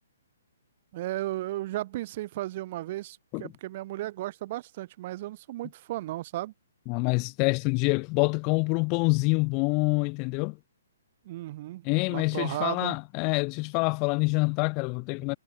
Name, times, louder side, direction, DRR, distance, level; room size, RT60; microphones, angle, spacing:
voice 1, 0.9-6.5 11.2-13.0, right 16 dB, 40° right, 1.0 m, -35 dB
voice 2, 6.9-10.6 11.8-15.4, left 33 dB, 25° left, 0.8 m, -26 dB
hypercardioid pair, 155°, 0 cm